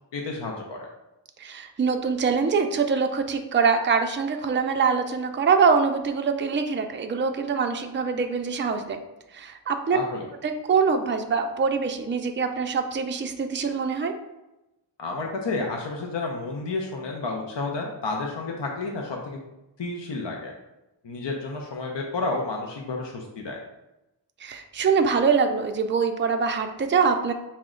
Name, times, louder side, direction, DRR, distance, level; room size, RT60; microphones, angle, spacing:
voice 1, 0.1-0.9 9.9-10.3 15.0-19.4 19.8-20.5 21.0-23.6, left 3 dB, 70° left, 0 dB, 0.7 m, -31 dB
voice 2, 1.4-9.0 9.3-10.0 10.4-14.1 24.4-27.3, right 5 dB, 25° right, 5 dB, 0.4 m, -24 dB
5.8 x 2.1 x 3.7 m, 0.95 s
wide cardioid pair, 65°, 45 cm